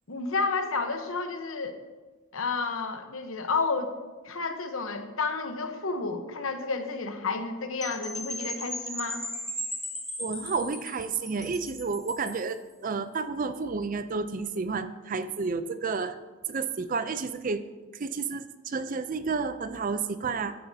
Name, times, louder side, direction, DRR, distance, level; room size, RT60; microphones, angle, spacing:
voice 1, 0.1-1.8 2.3-3.9 4.2-9.2, left 4 dB, 70° left, 7 dB, 1.0 m, -31 dB
Percussion / Wind chime, 7.8-12.5, equal, ahead, 1.2 m, -37 dB
voice 2, 10.2-16.2 16.5-17.6 17.9-20.6, right 4 dB, 40° right, 12 dB, 0.4 m, -31 dB
14.5 x 9.8 x 2.8 m, 1.3 s
head